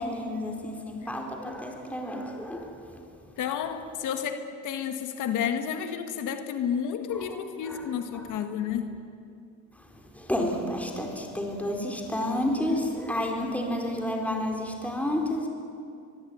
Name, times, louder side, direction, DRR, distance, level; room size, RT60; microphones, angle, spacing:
voice 1, 0.0-2.8 7.1-8.3 9.8-15.5, left 1 dB, 5° left, 1 dB, 4.5 m, -31 dB
voice 2, 3.4-9.0, left 8 dB, 85° left, 8 dB, 1.8 m, -31 dB
24.0 x 22.5 x 9.5 m, 2.5 s
cardioid pair, 90°, 30 cm